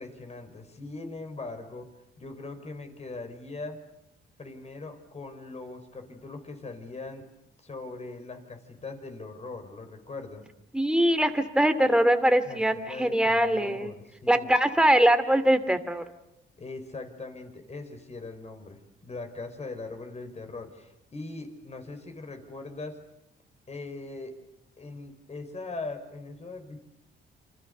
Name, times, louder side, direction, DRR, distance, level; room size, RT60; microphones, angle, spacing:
voice 1, 0.0-1.9 2.2-3.8 4.4-7.2 7.6-10.4 12.5-14.5 16.6-23.0 23.7-24.3 24.8-26.8, left 3 dB, 35° left, 7 dB, 5.3 m, -40 dB
voice 2, 10.7-13.9 14.3-16.0, right 1 dB, 5° right, 9 dB, 2.6 m, -22 dB
28.5 x 26.5 x 6.8 m, 0.82 s
cardioid pair, 90°, 20 cm